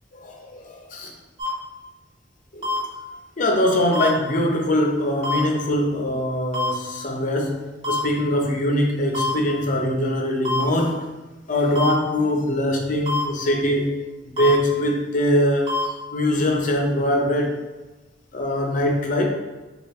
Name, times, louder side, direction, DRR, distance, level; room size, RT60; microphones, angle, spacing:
voice 1, 0.2-1.1 2.5-2.8 3.4-11.0 11.5-13.9 14.2-17.5 18.3-19.3, left 1 dB, 45° left, 1 dB, 0.6 m, -22 dB
sound 1, 1.4-1.5 2.6-2.8 3.9-4.1 5.2-5.4 6.5-6.7 7.8-8.0 9.1-9.3 10.5-10.6 11.8-11.9 13.1-13.2 14.4-14.5 15.7-15.8, left 2 dB, 35° right, 0.9 m, -24 dB
4.2 x 2.4 x 3.4 m, 1.1 s
head